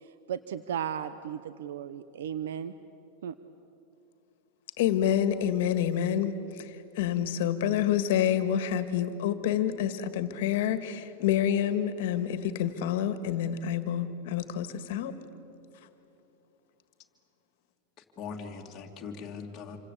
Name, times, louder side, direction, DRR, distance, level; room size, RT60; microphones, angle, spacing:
voice 1, 0.0-2.7 3.2-3.3, right 9 dB, 85° right, 13 dB, 0.8 m, -35 dB
voice 2, 4.8-15.1, left 10 dB, 60° left, 11 dB, 1.9 m, -28 dB
voice 3, 18.0-19.8, left 5 dB, 25° left, 0 dB, 2.7 m, -41 dB
27.5 x 25.0 x 8.5 m, 2.9 s
supercardioid pair, 165°, 0 cm